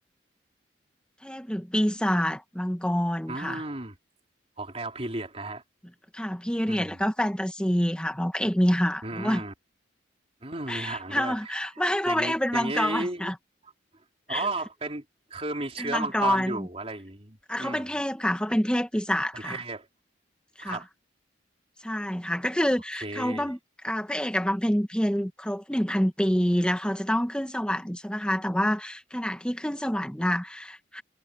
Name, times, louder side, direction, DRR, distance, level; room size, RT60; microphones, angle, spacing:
voice 1, 1.2-3.6 6.1-9.4 10.7-13.4 14.3-14.5 15.8-16.7 17.5-19.6 20.6-20.8 21.8-23.6 23.8-31.0, equal, 5° left, 1.6 m, -27 dB
voice 2, 3.3-3.9 4.6-5.6 6.7-7.0 9.0-9.5 10.4-11.6 12.1-13.3 14.3-15.0 15.3-17.9 19.3-19.9 20.6-20.9 23.0-23.5, right 2 dB, 35° right, 3.9 m, -34 dB
head